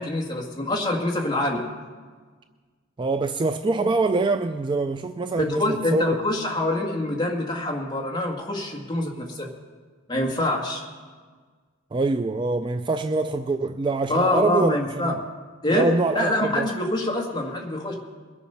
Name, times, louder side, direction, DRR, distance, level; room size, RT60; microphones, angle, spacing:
voice 1, 0.0-1.6 5.4-9.5 10.1-10.8 14.1-15.1 15.6-17.9, left 1 dB, 20° left, 1.9 m, -25 dB
voice 2, 3.0-6.2 11.9-15.2 15.7-16.7, right 3 dB, 25° right, 0.3 m, -24 dB
21.5 x 7.2 x 5.7 m
head